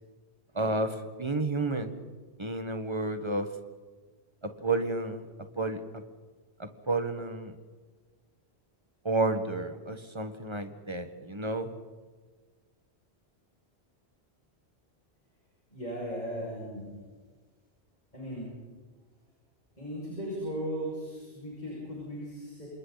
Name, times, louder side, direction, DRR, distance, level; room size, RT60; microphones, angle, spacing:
voice 1, 0.5-2.1 2.4-3.5 4.4-5.3 5.6-6.0 6.6-7.5 9.0-11.7, right 2 dB, 25° right, 7 dB, 1.6 m, -31 dB
voice 2, 15.7-16.9 18.1-18.5 19.8-22.7, equal, 40° left, -4 dB, 7.0 m, -37 dB
28.0 x 26.5 x 4.1 m, 1.4 s
omnidirectional pair, 1.1 m